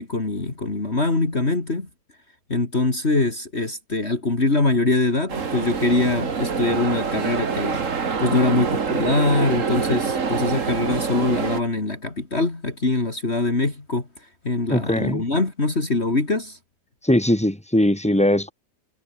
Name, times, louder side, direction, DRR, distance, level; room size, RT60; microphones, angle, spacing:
voice 1, 0.0-1.9 2.5-7.8 8.2-14.1 14.4-16.6, left 3 dB, 35° left, 3.4 m, -23 dB
sound 1, 5.3-11.6, right 5 dB, 50° right, 2.2 m, -25 dB
voice 2, 14.7-15.2 17.0-18.5, left 1 dB, 5° left, 4.4 m, -20 dB
omnidirectional pair, 1.8 m